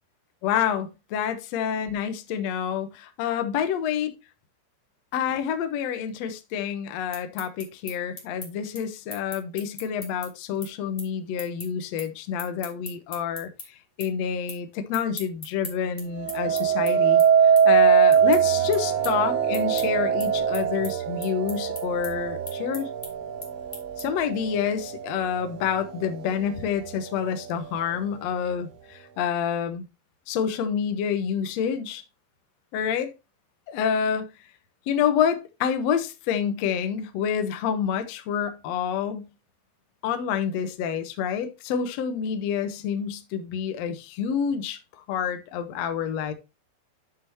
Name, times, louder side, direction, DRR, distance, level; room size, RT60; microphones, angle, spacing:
voice 1, 0.4-4.1 5.1-13.5 14.0-22.9 24.0-29.9 30.3-32.0 32.7-33.1 33.7-34.3 34.9-39.3 40.0-44.8 45.1-46.3, left 8 dB, 75° left, 1.5 m, -28 dB
sound 1, 6.9-13.7 14.0-14.6 14.9-24.3, left 2 dB, 20° left, 2.1 m, -40 dB
sound 2, 16.2-25.3 25.9-26.3, right 7 dB, 65° right, 2.1 m, -22 dB
10.5 x 6.3 x 2.9 m
omnidirectional pair, 4.5 m